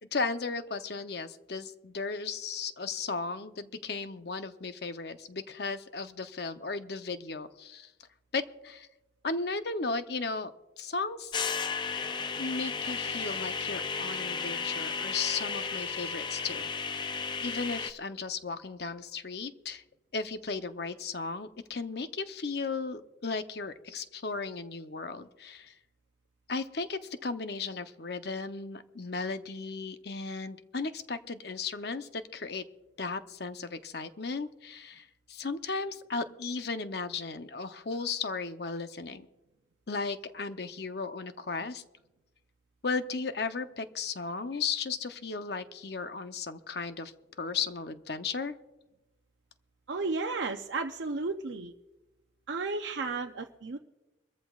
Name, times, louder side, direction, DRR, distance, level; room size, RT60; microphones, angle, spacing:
voice 1, 0.0-7.9 8.3-8.9 9.2-10.5 10.8-11.3 12.4-16.7 17.4-19.8 20.1-25.7 26.5-32.6 33.0-39.3 39.9-41.8 42.8-47.1 47.4-48.5, left 4 dB, 55° left, 9 dB, 0.7 m, -35 dB
sound 1, 11.3-17.9, left 5 dB, 25° left, 0.4 m, -34 dB
voice 2, 49.9-51.7 52.5-53.8, right 3 dB, 70° right, 3 dB, 0.6 m, -33 dB
24.5 x 14.0 x 2.4 m, 1.0 s
head